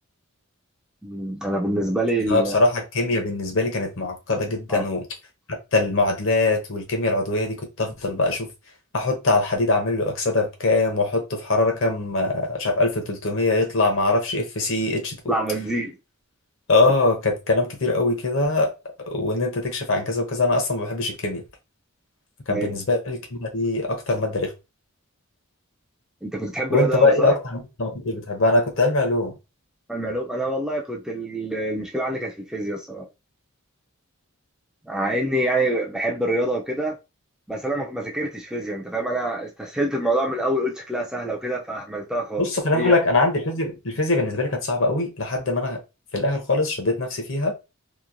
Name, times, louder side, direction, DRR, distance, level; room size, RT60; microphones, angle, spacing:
voice 1, 1.0-2.6 4.7-4.9 15.3-16.0 22.5-22.7 26.2-27.4 29.9-33.1 34.8-37.0 37.5-42.5 42.7-43.0, right 1 dB, 5° right, 0.3 m, -26 dB
voice 2, 2.3-5.0 5.7-8.5 8.9-15.4 16.7-18.7 19.1-21.4 22.5-24.5 26.7-29.3 42.4-45.8 46.1-47.5, left 2 dB, 60° left, 0.8 m, -22 dB
2.9 x 2.1 x 2.5 m
head